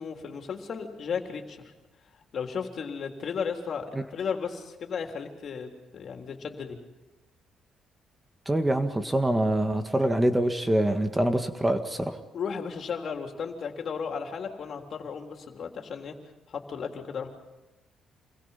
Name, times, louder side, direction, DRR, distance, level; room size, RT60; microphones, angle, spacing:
voice 1, 0.0-1.6 2.3-6.8 12.3-16.1 16.5-17.3, left 6 dB, 55° left, 3 dB, 3.6 m, -34 dB
voice 2, 8.5-12.2, right 1 dB, 15° right, 7 dB, 1.8 m, -25 dB
28.5 x 21.5 x 5.8 m, 1.1 s
cardioid pair, 90°, 0 cm